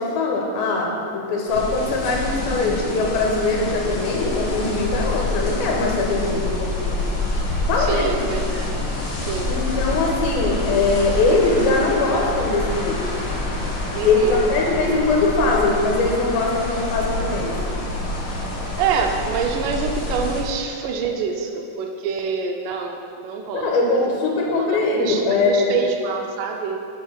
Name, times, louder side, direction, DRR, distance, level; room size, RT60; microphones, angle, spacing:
voice 1, 0.0-7.1 7.7-8.1 9.5-13.0 14.0-17.6 23.5-25.8, left 3 dB, 85° left, -1 dB, 2.9 m, -21 dB
sound 1, 1.5-20.4, left 2 dB, 60° left, 1.4 m, -26 dB
voice 2, 7.8-8.7 9.2-9.6 13.9-14.4 18.8-23.8 24.6-27.0, right 5 dB, 75° right, 3 dB, 2.2 m, -26 dB
6.9 x 5.6 x 6.3 m, 2.4 s
omnidirectional pair, 4.2 m